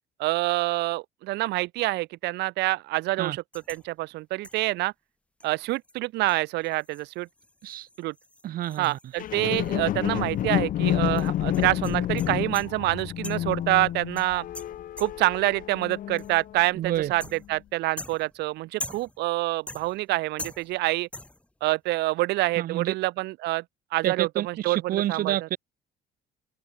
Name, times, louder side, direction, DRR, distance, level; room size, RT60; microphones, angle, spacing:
voice 1, 0.2-3.4 3.7-4.9 5.4-7.3 8.0-8.1 8.8-14.4 15.0-17.2 17.5-21.1 21.6-23.6 23.9-25.4, right 19 dB, 85° right, 1.0 m, -27 dB
sound 1, 3.5-3.9 4.4-4.7 5.4-5.5 5.8-5.9 6.3-10.1 10.3-10.4 11.2-12.8 13.2-13.6 14.2-15.4 16.2-16.5 17.2-17.6 18.0-19.3 19.7-20.1 20.4-20.9 21.1-21.5, left 1 dB, 5° left, 1.6 m, -43 dB
voice 2, 8.4-9.0 16.7-17.1 22.6-22.9 24.0-25.6, right 13 dB, 60° right, 0.9 m, -28 dB
sound 2, 9.2-16.6 17.2-17.3, left 12 dB, 55° left, 0.8 m, -29 dB
cardioid pair, 110°, 17 cm